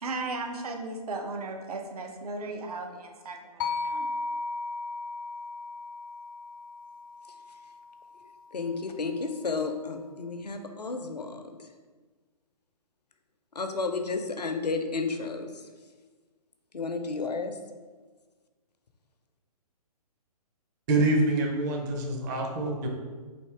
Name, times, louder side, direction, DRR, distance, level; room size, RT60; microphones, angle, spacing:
voice 1, 0.0-4.1, right 3 dB, 70° right, 3 dB, 0.7 m, -36 dB
sound 1, 3.6-7.8, left 3 dB, 30° left, 0.3 m, -35 dB
voice 2, 8.5-11.5 13.5-15.5 16.7-17.5, left 4 dB, 85° left, 6 dB, 0.6 m, -32 dB
voice 3, 20.9-22.9, right 2 dB, 25° right, 1 dB, 0.6 m, -26 dB
3.5 x 2.8 x 4.4 m, 1.4 s
figure-of-eight pair, 135°, 20 cm